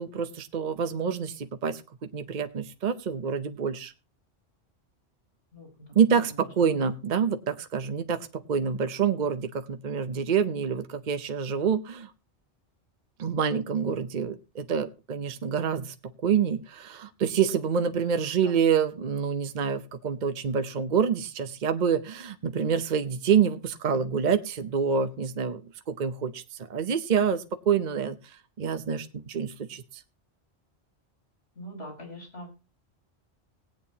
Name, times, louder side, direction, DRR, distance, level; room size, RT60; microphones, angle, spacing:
voice 1, 0.0-3.9 5.9-12.1 13.2-25.6 25.9-26.4 26.7-28.2 28.6-29.8, right 7 dB, 45° right, 9 dB, 0.9 m, -27 dB
voice 2, 5.5-5.9 6.6-6.7 31.6-32.5, equal, 70° left, -1 dB, 5.2 m, -42 dB
18.0 x 9.0 x 2.9 m, 0.30 s
omnidirectional pair, 1.1 m